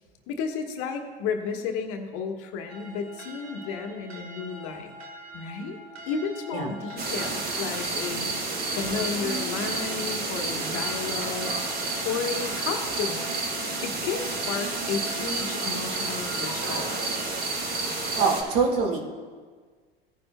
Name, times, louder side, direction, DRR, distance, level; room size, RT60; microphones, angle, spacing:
voice 1, 0.3-4.9 5.3-5.8 6.1-8.3 8.7-11.6 12.0-13.3 13.8-17.2, left 5 dB, 50° left, 4 dB, 1.2 m, -32 dB
sound 1, 2.7-17.5, right 1 dB, 80° right, 1.7 m, -43 dB
sound 2, 7.0-18.4, right 3 dB, 30° right, 2.1 m, -30 dB
voice 2, 18.2-19.0, right 5 dB, 55° right, 1 dB, 1.9 m, -24 dB
16.0 x 9.8 x 2.2 m, 1.5 s
figure-of-eight pair, 80°, 30 cm